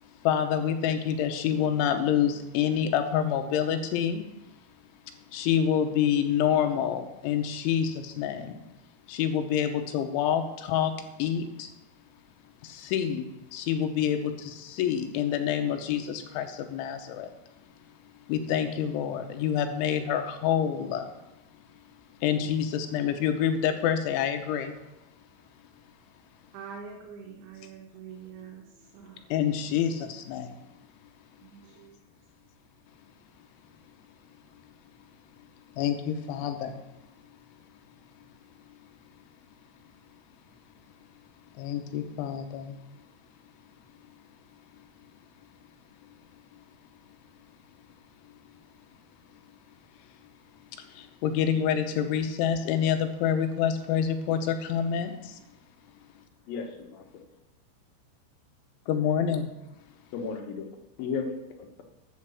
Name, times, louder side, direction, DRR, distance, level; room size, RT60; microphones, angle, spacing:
voice 1, 0.2-4.3 5.3-8.6 9.1-10.9 11.2-11.7 12.6-17.3 18.3-21.1 22.2-24.8 29.3-30.6 35.7-36.8 41.6-42.8 50.7-55.4 58.9-59.5, left 9 dB, 90° left, 7 dB, 3.4 m, -27 dB
voice 2, 26.5-29.2 29.6-30.1 31.4-32.0, right 6 dB, 85° right, -1 dB, 3.7 m, -45 dB
voice 3, 56.5-57.0 60.1-60.7 61.0-61.8, left 5 dB, 65° left, 4 dB, 2.5 m, -34 dB
12.0 x 5.9 x 7.0 m, 0.95 s
omnidirectional pair, 5.3 m